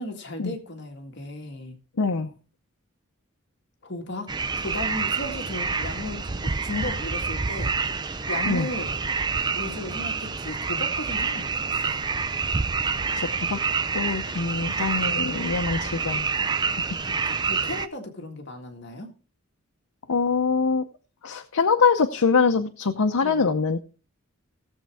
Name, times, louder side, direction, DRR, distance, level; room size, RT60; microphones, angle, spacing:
voice 1, 0.0-1.8 3.8-4.3 4.6-7.7 8.3-9.0 9.5-12.1 17.0-19.1 23.2-23.5, left 1 dB, 55° left, 3 dB, 1.8 m, -35 dB
voice 2, 2.0-2.3 8.5-8.7 13.2-13.6 13.9-16.3 20.1-20.8 21.2-23.8, left 5 dB, 85° left, 5 dB, 0.7 m, -23 dB
sound 1, 4.3-17.9, right 5 dB, 20° right, 0.4 m, -27 dB
17.5 x 7.3 x 3.5 m, 0.35 s
head